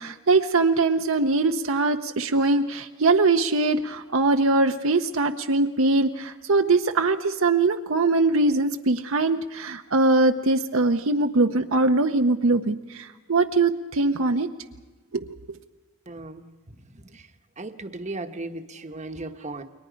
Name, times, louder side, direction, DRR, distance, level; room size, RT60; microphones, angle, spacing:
voice 1, 0.0-14.5 15.5-15.6, right 3 dB, 65° right, 6 dB, 0.7 m, -22 dB
voice 2, 16.1-17.3 17.6-19.6, right 2 dB, 35° right, 7 dB, 1.2 m, -37 dB
29.5 x 22.5 x 5.1 m, 1.2 s
head